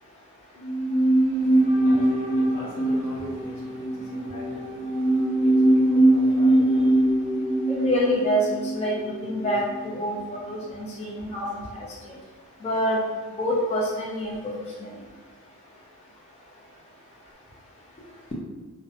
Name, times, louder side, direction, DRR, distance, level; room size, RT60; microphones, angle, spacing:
sound 1, 0.6-9.9 10.2-10.3, right 1 dB, 25° right, 0.6 m, -22 dB
voice 1, 1.3-7.7 10.5-11.3, left 1 dB, 60° left, -5 dB, 0.8 m, -43 dB
voice 2, 7.7-11.9 12.6-13.0 13.4-14.4 14.8-14.9, equal, 20° left, -4 dB, 0.4 m, -26 dB
2.5 x 2.1 x 2.6 m, 1.3 s
wide cardioid pair, 125°, 35 cm